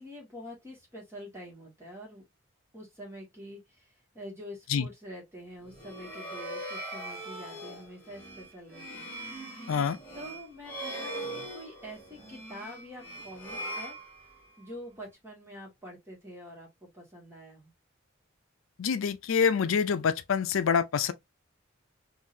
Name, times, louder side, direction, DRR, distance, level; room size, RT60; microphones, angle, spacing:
voice 1, 0.0-2.2 2.7-9.1 10.1-14.0 14.6-17.7, equal, 15° right, 1.7 m, -46 dB
sound 1, 5.6-14.7, right 1 dB, 10° left, 1.5 m, -41 dB
voice 2, 18.8-21.1, left 6 dB, 80° left, 0.4 m, -26 dB
3.7 x 2.7 x 2.6 m
head